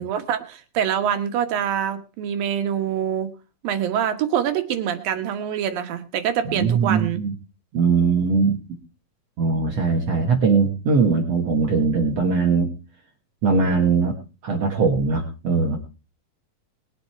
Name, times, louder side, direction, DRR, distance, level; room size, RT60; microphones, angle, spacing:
voice 1, 0.0-3.3 3.6-7.2, right 9 dB, 85° right, 8 dB, 3.1 m, -25 dB
voice 2, 6.5-7.3 7.7-8.6 9.4-12.7 13.4-14.1 14.4-15.8, right 4 dB, 50° right, 2 dB, 2.6 m, -20 dB
21.0 x 7.9 x 4.5 m, 0.32 s
omnidirectional pair, 3.9 m